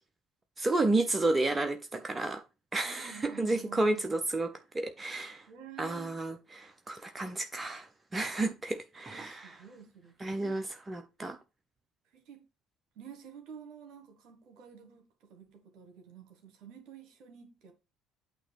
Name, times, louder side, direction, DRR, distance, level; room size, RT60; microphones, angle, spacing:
voice 1, 0.6-2.4 2.7-5.5 5.8-9.5 10.2-11.4, right 2 dB, 20° right, 0.7 m, -31 dB
voice 2, 2.9-4.1 5.5-6.1 9.1-10.6 12.1-12.4 13.0-17.7, right 8 dB, 55° right, 1.7 m, -50 dB
8.9 x 3.0 x 5.9 m
figure-of-eight pair, 55°, 0 cm